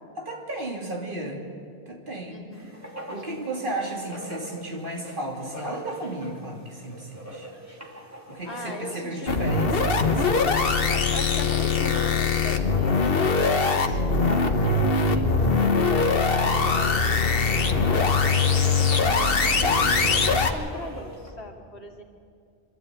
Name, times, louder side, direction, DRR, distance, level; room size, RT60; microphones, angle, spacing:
voice 1, 0.2-1.4 1.9-2.7 3.1-7.5 8.3-11.1 14.1-14.5 19.0-20.1, right 1 dB, 55° right, 1 dB, 3.0 m, -35 dB
voice 2, 2.3-2.7 8.5-9.2 10.8-15.4 15.9-17.0 17.9-22.0, left 2 dB, 85° left, 1 dB, 2.6 m, -40 dB
Writing, 2.5-21.3, right 1 dB, 15° right, 2.9 m, -41 dB
sound 1, 9.3-20.5, left 4 dB, 65° left, 1.4 m, -22 dB
24.5 x 13.0 x 9.1 m, 2.4 s
omnidirectional pair, 1.1 m